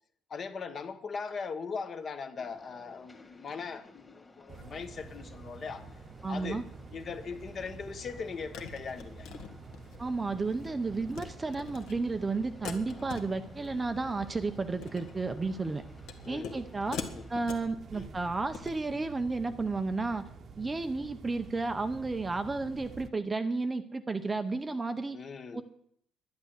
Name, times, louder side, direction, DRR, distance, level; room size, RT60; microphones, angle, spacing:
voice 1, 0.3-5.8 6.3-6.6 6.9-9.3 16.2-16.5 16.9-17.3 17.9-18.1 25.1-25.6, left 5 dB, 30° left, 10 dB, 1.1 m, -39 dB
sound 1, 2.4-17.4, left 2 dB, 15° left, 2.0 m, -57 dB
sound 2, 4.5-23.1, right 4 dB, 30° right, 1.0 m, -49 dB
voice 2, 6.2-6.6 10.0-15.8 16.3-17.0 17.3-20.2 20.6-25.2 25.5-25.6, right 3 dB, 15° right, 9 dB, 0.7 m, -32 dB
sound 3, 7.7-7.8 8.5-10.0 10.4-10.7 11.0-11.3 11.5-11.9 12.6-13.7 13.9-14.3 14.7-15.1 16.1-16.6 16.9-17.7 18.4-18.8, left 6 dB, 70° left, 1.8 m, -42 dB
11.5 x 11.0 x 8.1 m, 0.67 s
cardioid pair, 180°, 0 cm